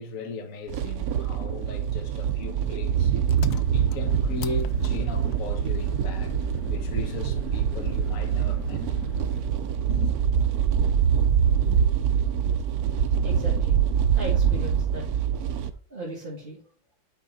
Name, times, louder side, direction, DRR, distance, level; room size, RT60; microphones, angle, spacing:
voice 1, 0.0-3.2 3.7-6.3 6.7-9.0 9.9-10.2, left 3 dB, 45° left, 1.3 m, -37 dB
sound 1, 0.7-15.7, right 8 dB, 75° right, 0.8 m, -24 dB
Engine, 3.3-9.6, left 13 dB, 75° left, 1.2 m, -39 dB
voice 2, 13.2-13.7 14.1-15.3 15.9-16.6, right 1 dB, 30° right, 1.5 m, -37 dB
9.0 x 3.7 x 4.0 m
omnidirectional pair, 2.2 m